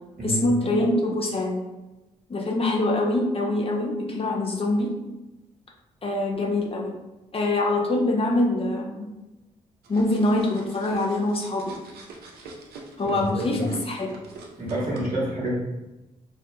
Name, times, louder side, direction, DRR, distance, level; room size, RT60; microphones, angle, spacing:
voice 1, 0.2-1.6 2.3-4.9 6.0-7.0 7.3-9.1 9.9-11.8 13.0-14.2, left 2 dB, 35° left, 0 dB, 0.5 m, -24 dB
sound 1, 9.8-15.0, right 3 dB, 70° right, 0.5 m, -43 dB
voice 2, 13.0-13.7 14.6-15.6, right 1 dB, 55° right, -6 dB, 1.1 m, -28 dB
2.2 x 2.2 x 2.7 m, 1.0 s
supercardioid pair, 50°, 16 cm